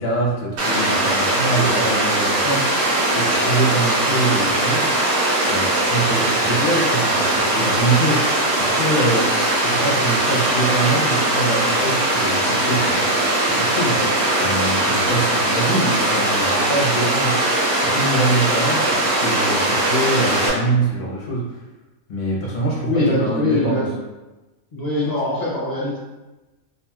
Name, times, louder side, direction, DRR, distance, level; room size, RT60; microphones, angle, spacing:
voice 1, 0.0-4.9 5.5-9.3 9.6-13.0 13.4-21.6 22.1-23.8, right 2 dB, 45° left, -5 dB, 0.7 m, -24 dB
Water, 0.6-20.5, right 1 dB, 80° right, 1.4 m, -20 dB
voice 2, 22.8-23.9 24.7-26.0, left 2 dB, 65° left, -8 dB, 0.4 m, -22 dB
2.9 x 2.7 x 2.3 m, 1.1 s
omnidirectional pair, 1.5 m